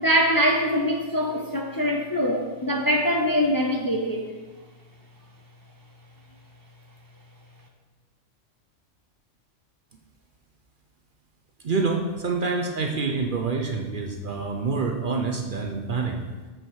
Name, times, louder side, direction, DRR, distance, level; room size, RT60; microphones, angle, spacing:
voice 1, 0.0-4.2, equal, 25° left, 1 dB, 0.6 m, -23 dB
voice 2, 11.6-16.2, right 4 dB, 50° right, 2 dB, 0.8 m, -27 dB
8.6 x 4.9 x 4.7 m, 1.3 s
omnidirectional pair, 1.3 m